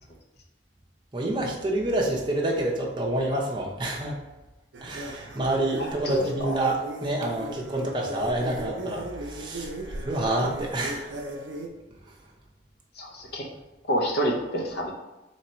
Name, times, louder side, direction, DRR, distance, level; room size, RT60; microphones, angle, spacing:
voice 1, 1.1-4.2 4.8-9.7 10.1-11.1, right 1 dB, 25° right, -2 dB, 0.6 m, -27 dB
sound 1, 4.7-11.7, right 1 dB, 85° right, 0.5 m, -38 dB
voice 2, 5.8-6.5 13.0-13.5 13.9-14.9, equal, 60° left, 1 dB, 0.7 m, -28 dB
3.1 x 2.8 x 4.2 m, 1.0 s
head